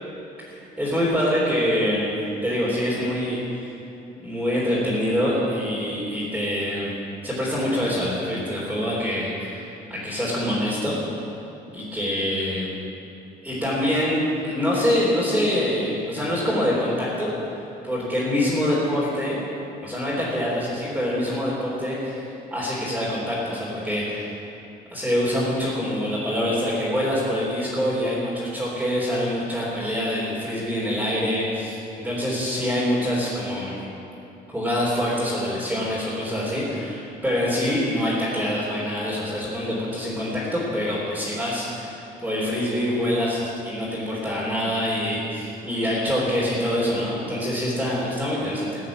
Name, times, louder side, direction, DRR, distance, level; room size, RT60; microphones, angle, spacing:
voice 1, 0.5-2.1 2.4-3.8 4.2-6.9 7.2-11.0 11.7-12.7 13.4-17.3 17.8-19.4 19.8-24.4 24.9-33.8 34.5-48.8, equal, 5° right, -9 dB, 3.7 m, -25 dB
16.0 x 8.2 x 7.5 m, 2.8 s
cardioid pair, 110°, 17 cm